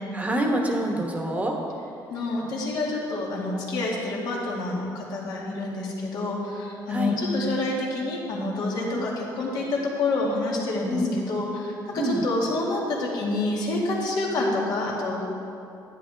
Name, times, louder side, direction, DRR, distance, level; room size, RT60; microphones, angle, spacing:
voice 1, 0.1-1.6 6.9-7.1 8.9-9.0 10.9-11.1 11.9-12.2, equal, 20° right, 1 dB, 1.2 m, -26 dB
voice 2, 2.1-11.0 11.3-15.2, left 2 dB, 65° left, -3 dB, 2.1 m, -27 dB
11.0 x 9.9 x 3.4 m, 2.6 s
cardioid pair, 145°, 8 cm